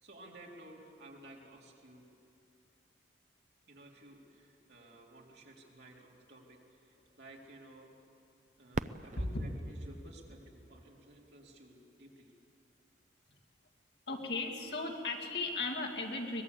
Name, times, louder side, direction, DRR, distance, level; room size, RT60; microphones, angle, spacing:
voice 1, 0.0-2.0 3.7-7.9 8.6-12.3, right 1 dB, 70° right, -2 dB, 3.7 m, -55 dB
Fireworks, 8.7-11.5 12.2-12.3 13.0-13.4 15.3-15.4, right 3 dB, 40° right, 0.5 m, -43 dB
voice 2, 14.1-16.4, left 3 dB, 65° left, 1 dB, 2.5 m, -36 dB
23.0 x 20.0 x 8.3 m, 2.6 s
head